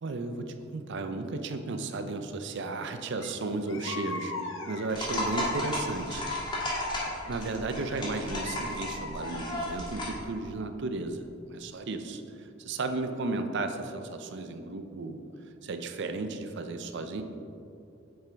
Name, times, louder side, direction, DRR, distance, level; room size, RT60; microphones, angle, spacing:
voice 1, 0.0-6.2 7.2-15.2 15.6-17.2, right 3 dB, 60° right, 7 dB, 0.5 m, -34 dB
sound 1, 3.2-3.3 3.7-5.0 5.6-7.3 7.9-9.6, left 3 dB, 70° left, 0.7 m, -39 dB
sound 2, 4.9-10.2, left 1 dB, 25° left, 1.7 m, -34 dB
8.9 x 5.7 x 3.5 m, 2.6 s
head